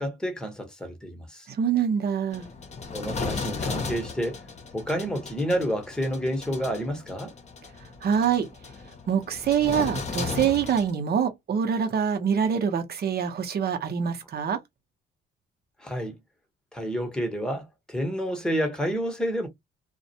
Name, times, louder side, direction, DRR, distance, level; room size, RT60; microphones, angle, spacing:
voice 1, 0.0-1.5 2.9-4.4 4.7-7.3 15.8-16.2 16.7-19.5, equal, 5° left, 0.9 m, -29 dB
voice 2, 1.5-2.5 8.0-8.5 9.1-14.6, right 7 dB, 50° right, 0.8 m, -25 dB
sound 1, 2.3-10.9, left 4 dB, 35° left, 0.7 m, -35 dB
2.3 x 2.1 x 2.7 m
cardioid pair, 90°, 20 cm